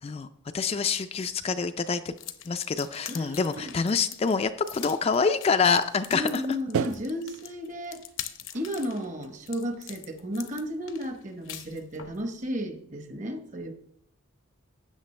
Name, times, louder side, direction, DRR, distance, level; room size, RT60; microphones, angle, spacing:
voice 1, 0.5-2.1 2.5-6.4, left 5 dB, 30° left, 0.3 m, -26 dB
sound 1, 2.2-12.2, left 11 dB, 65° left, 0.7 m, -43 dB
voice 2, 3.1-3.7 6.1-8.0 8.5-13.7, equal, 35° right, 1.0 m, -33 dB
sound 2, 3.5-3.9 4.2-4.7 5.2-5.3 5.5-6.1 6.7-9.2, right 7 dB, 80° right, 0.4 m, -35 dB
12.5 x 8.3 x 3.2 m
head